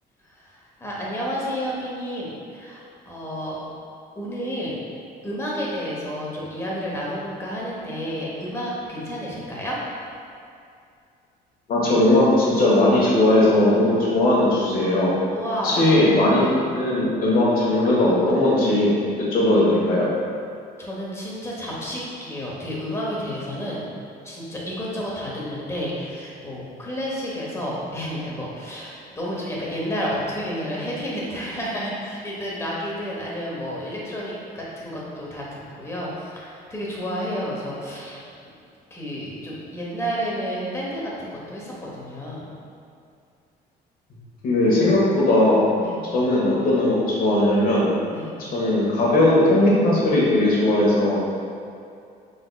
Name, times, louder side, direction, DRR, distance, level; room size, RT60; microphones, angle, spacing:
voice 1, 0.3-3.6 4.1-4.7 5.2-9.8 15.3-15.9 16.4-16.6 20.8-23.8 24.2-38.3 38.9-42.5 45.8-46.0 48.1-48.3, equal, 15° left, -5 dB, 1.1 m, -31 dB
voice 2, 11.7-15.1 15.6-18.9 19.2-20.1 44.4-45.6 46.1-47.9 48.4-51.2, left 1 dB, 60° left, -6 dB, 1.4 m, -18 dB
4.7 x 4.0 x 2.3 m, 2.5 s
cardioid pair, 110°, 17 cm